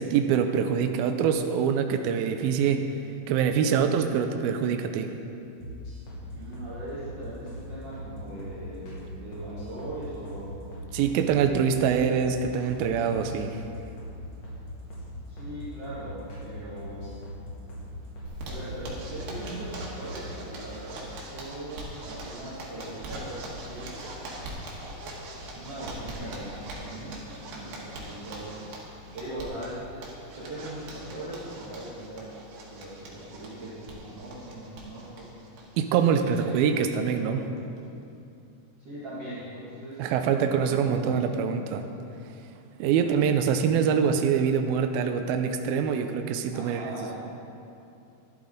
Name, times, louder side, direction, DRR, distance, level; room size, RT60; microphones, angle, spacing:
voice 1, 0.0-2.8 3.3-5.1 10.9-13.6 35.8-37.4 40.0-41.9 42.8-47.0, right 7 dB, 90° right, 6 dB, 2.1 m, -24 dB
sound 1, 5.6-6.2 6.5-6.7 7.0-7.2 7.5-7.6 7.9-8.1 8.4-8.6 8.9-9.0 9.3-10.0 10.3-10.4 10.7-10.9 11.2-11.3 11.6-11.8 12.1-12.3 12.6-12.7 13.0-13.7 14.0-14.1 14.4-14.6 14.9-15.1 15.4-15.5 15.8-16.0 16.3-16.5 16.8-17.4 17.7-17.9 18.2-18.3 18.6-18.8 19.1-19.3 19.6-19.7 20.0-20.2, right 1 dB, 55° left, 3.4 m, -40 dB
voice 2, 6.3-10.7 15.0-17.2 18.4-21.0 21.3-23.9 25.5-27.2 27.5-28.8 29.1-30.1 30.3-32.3 32.7-35.3 36.2-36.5 36.9-37.5 38.8-41.2 42.9-43.1 46.5-47.2, right 1 dB, 40° right, -12 dB, 2.6 m, -40 dB
Zipper (clothing), 18.3-36.4 36.8-36.9 37.2-37.3 37.6-38.0, right 1 dB, 65° right, 3.4 m, -42 dB
12.5 x 12.0 x 3.9 m, 2.7 s
omnidirectional pair, 4.9 m